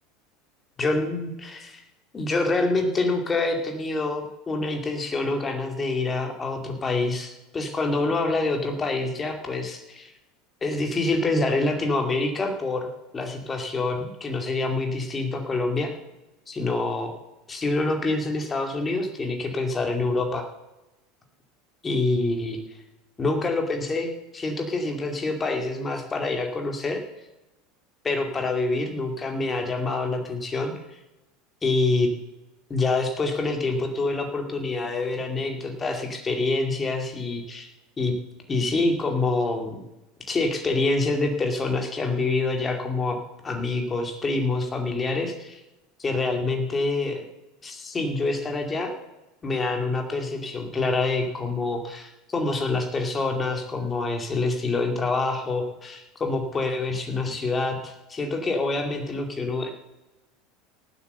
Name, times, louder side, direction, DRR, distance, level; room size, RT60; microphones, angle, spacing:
voice 1, 0.8-1.8 2.1-10.1 10.6-12.9 13.1-15.9 16.5-17.1 17.5-20.4 21.8-22.6 23.2-27.0 28.0-30.7 31.6-32.1 32.7-37.7 38.0-38.1 38.5-39.8 40.3-43.2 43.4-45.6 46.0-47.2 47.6-48.9 49.4-59.7, left 3 dB, 20° left, 4 dB, 2.5 m, -26 dB
17.5 x 8.2 x 6.7 m, 0.97 s
supercardioid pair, 145°, 0 cm